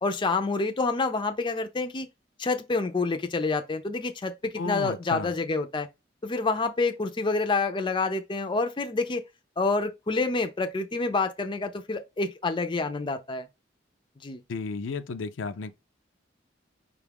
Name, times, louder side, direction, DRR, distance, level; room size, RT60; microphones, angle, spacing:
voice 1, 0.0-2.1 2.4-5.9 6.2-9.2 9.6-13.5 14.2-14.4, left 3 dB, 25° left, 0.5 m, -28 dB
voice 2, 4.6-5.3 14.5-15.7, left 4 dB, 85° left, 0.5 m, -33 dB
5.1 x 2.4 x 3.4 m
head